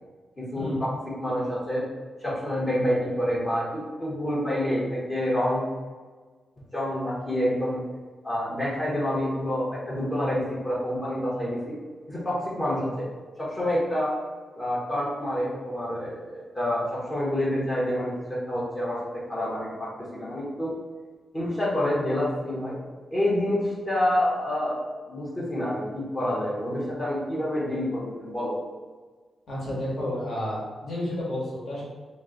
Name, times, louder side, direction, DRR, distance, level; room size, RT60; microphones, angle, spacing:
voice 1, 0.4-0.9 1.2-1.9 2.2-5.7 6.7-7.8 8.2-11.7 12.1-13.0 13.4-14.1 14.5-20.7 21.3-22.8 23.1-28.5, left 1 dB, 25° left, -7 dB, 0.9 m, -28 dB
voice 2, 29.5-31.8, left 1 dB, 60° left, -6 dB, 1.4 m, -31 dB
3.0 x 2.9 x 3.7 m, 1.4 s
wide cardioid pair, 155°, 0 cm